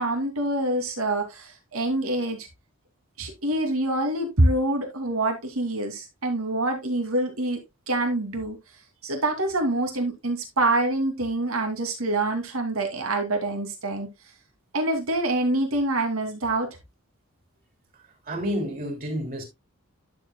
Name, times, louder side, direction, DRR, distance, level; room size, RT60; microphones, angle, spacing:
voice 1, 0.0-2.5 3.2-8.6 9.0-14.1 14.7-16.7, right 2 dB, 85° right, 2.6 m, -26 dB
voice 2, 18.2-19.4, equal, 40° right, 3.1 m, -29 dB
11.5 x 7.1 x 2.2 m
head